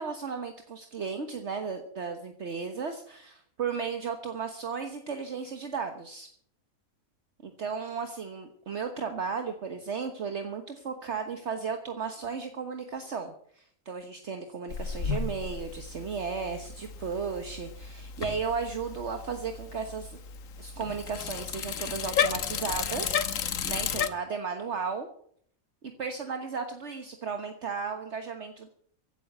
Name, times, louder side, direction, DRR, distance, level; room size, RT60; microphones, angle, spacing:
voice 1, 0.0-6.3 7.4-20.2 20.6-23.2 23.6-25.1 25.8-28.7, right 5 dB, 55° right, 6 dB, 1.5 m, -35 dB
Bicycle, 14.7-24.1, left 7 dB, 75° left, 1.4 m, -33 dB
15.5 x 9.3 x 7.9 m, 0.63 s
omnidirectional pair, 1.4 m